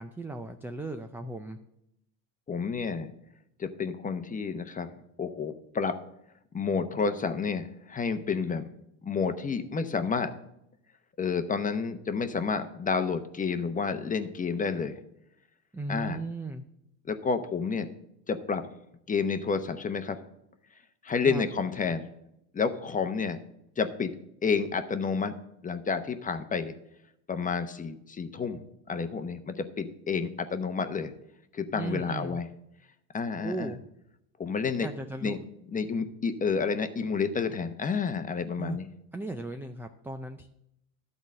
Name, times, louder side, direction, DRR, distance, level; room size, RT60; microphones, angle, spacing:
voice 1, 0.0-1.6 15.7-16.6 21.2-21.4 31.7-32.4 33.4-33.8 34.8-35.4 38.6-38.8 39.1-40.5, right 3 dB, 5° right, 6 dB, 0.3 m, -36 dB
voice 2, 2.5-3.1 3.6-4.9 5.2-5.9 6.5-8.7 9.0-10.3 11.2-15.0 15.9-16.2 17.1-17.9 18.3-18.6 19.1-20.2 21.0-22.1 22.5-23.4 23.8-24.1 24.4-25.3 25.6-26.7 27.3-28.6 28.9-31.1 31.5-32.5 33.1-33.7 34.4-34.9 35.2-35.4 35.7-38.9, left 5 dB, 20° left, 9 dB, 0.8 m, -30 dB
12.0 x 4.0 x 7.4 m, 0.80 s
supercardioid pair, 100°, 41 cm